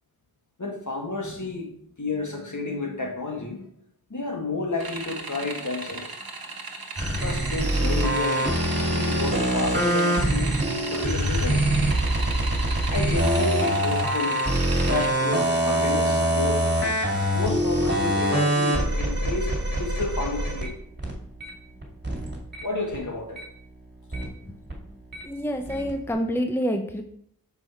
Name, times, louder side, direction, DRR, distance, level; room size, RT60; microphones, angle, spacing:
voice 1, 0.6-1.7 2.0-3.7 4.1-6.1 7.2-8.5 8.8-11.7 12.9-14.4 14.9-16.7 17.3-20.8 22.6-23.4 24.2-24.4, left 3 dB, 55° left, 1.6 m, -31 dB
sound 1, 4.8-15.1, right 3 dB, 80° right, 1.0 m, -36 dB
sound 2, 7.0-22.6 22.9-25.2 25.5-26.1, right 1 dB, 30° right, 2.1 m, -24 dB
voice 2, 25.2-27.0, equal, 5° left, 0.7 m, -27 dB
6.3 x 5.2 x 4.5 m
wide cardioid pair, 45°, 36 cm